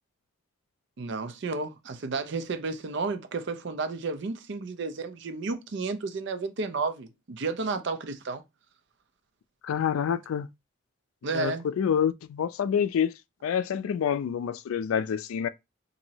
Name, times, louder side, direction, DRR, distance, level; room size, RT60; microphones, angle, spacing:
voice 1, 1.0-8.4 11.2-11.7, right 4 dB, 55° right, 0.5 m, -32 dB
voice 2, 9.6-10.5 11.3-13.1 13.4-15.5, left 8 dB, 85° left, 0.3 m, -27 dB
2.9 x 2.6 x 2.7 m
head